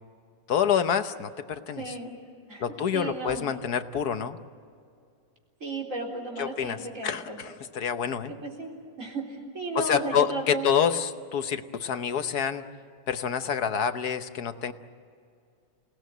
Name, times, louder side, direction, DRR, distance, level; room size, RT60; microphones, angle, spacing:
voice 1, 0.5-2.0 2.6-4.4 6.4-8.3 9.7-12.6 13.1-14.7, left 7 dB, 60° left, 10 dB, 1.3 m, -27 dB
voice 2, 1.8-2.2 2.5-3.5 5.6-7.4 8.4-10.7, right 2 dB, 40° right, -1 dB, 4.4 m, -35 dB
29.0 x 18.5 x 9.3 m, 2.4 s
omnidirectional pair, 2.0 m